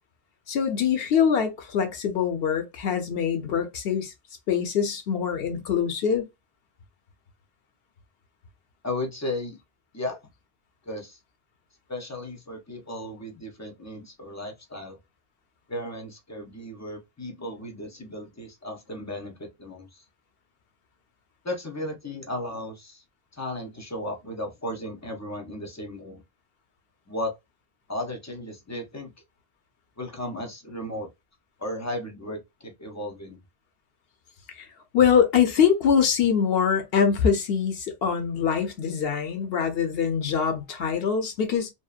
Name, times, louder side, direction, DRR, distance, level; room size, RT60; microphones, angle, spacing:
voice 1, 0.5-4.1 4.5-6.2 34.6-34.7 34.9-41.7, left 7 dB, 65° left, 0.8 m, -23 dB
voice 2, 8.8-9.6 9.9-10.2 10.9-11.2 11.9-15.0 15.7-20.0 21.4-23.0 23.3-26.2 27.1-27.3 27.9-29.1 30.0-31.1 31.6-33.4, left 1 dB, 25° left, 0.4 m, -35 dB
2.7 x 2.1 x 2.3 m
omnidirectional pair, 1.1 m